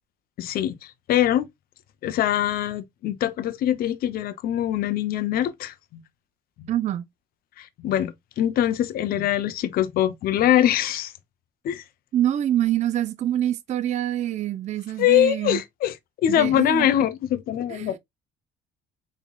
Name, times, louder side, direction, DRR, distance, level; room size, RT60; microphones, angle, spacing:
voice 1, 0.4-1.5 2.0-6.0 6.6-6.7 7.6-11.1 11.6-11.8 15.0-15.9 16.2-18.0, left 11 dB, 60° left, 0.6 m, -23 dB
voice 2, 6.7-7.1 12.1-15.6 16.3-16.9 17.7-18.0, right 12 dB, 45° right, 0.4 m, -25 dB
3.6 x 3.6 x 2.2 m
cardioid pair, 110°, 17 cm